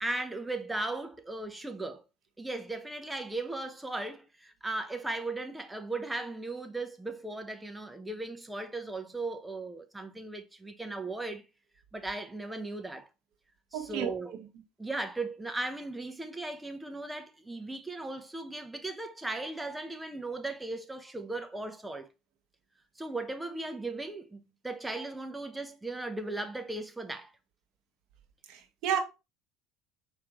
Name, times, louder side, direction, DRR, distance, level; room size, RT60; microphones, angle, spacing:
voice 1, 0.0-2.0 2.4-11.4 11.9-13.1 13.7-14.3 14.8-22.1 23.0-27.3, right 2 dB, 10° right, 0.8 m, -37 dB
voice 2, 13.7-14.1 28.5-29.0, right 8 dB, 65° right, 1.2 m, -31 dB
4.9 x 3.3 x 3.0 m
supercardioid pair, 95°, 0 cm